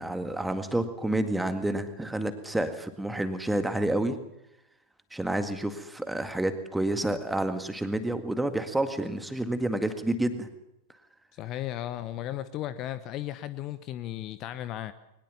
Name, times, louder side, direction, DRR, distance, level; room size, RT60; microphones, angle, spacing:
voice 1, 0.0-4.2 5.1-10.5, right 1 dB, 5° right, 8 dB, 1.9 m, -29 dB
voice 2, 11.3-14.9, left 12 dB, 35° left, 14 dB, 0.9 m, -35 dB
22.0 x 20.0 x 7.1 m, 0.88 s
figure-of-eight pair, 90°, 0 cm